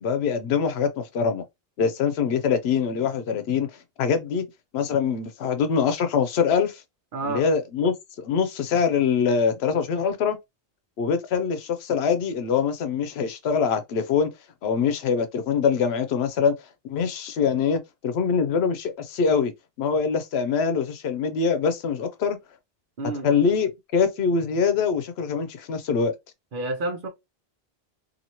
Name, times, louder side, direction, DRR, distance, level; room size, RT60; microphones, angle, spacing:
voice 1, 0.0-1.4 1.8-3.7 4.0-4.4 4.7-6.8 7.2-10.4 11.0-14.3 14.6-16.5 16.8-19.5 19.8-22.4 23.2-26.1, left 6 dB, 85° left, 0.9 m, -24 dB
voice 2, 7.1-7.4 23.0-23.3 26.5-27.1, right 2 dB, 60° right, 0.9 m, -29 dB
2.8 x 2.7 x 2.7 m
omnidirectional pair, 1.0 m